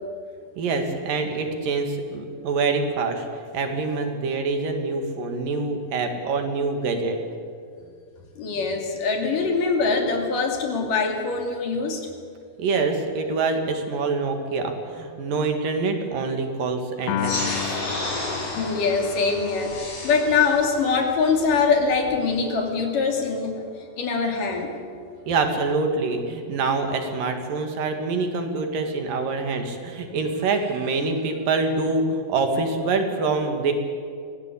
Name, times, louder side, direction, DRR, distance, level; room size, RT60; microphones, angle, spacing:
voice 1, 0.6-3.2 3.5-7.2 12.6-17.7 25.3-33.7, right 3 dB, 65° right, 5 dB, 3.6 m, -25 dB
voice 2, 8.4-12.1 18.5-23.7 24.0-24.7, left 4 dB, 65° left, 3 dB, 4.1 m, -23 dB
Piano, 17.1-23.5, left 12 dB, 85° left, 3.1 m, -35 dB
sound 1, 17.2-22.2, left 1 dB, 40° left, 6.1 m, -32 dB
25.5 x 18.0 x 8.4 m, 2.3 s
omnidirectional pair, 4.3 m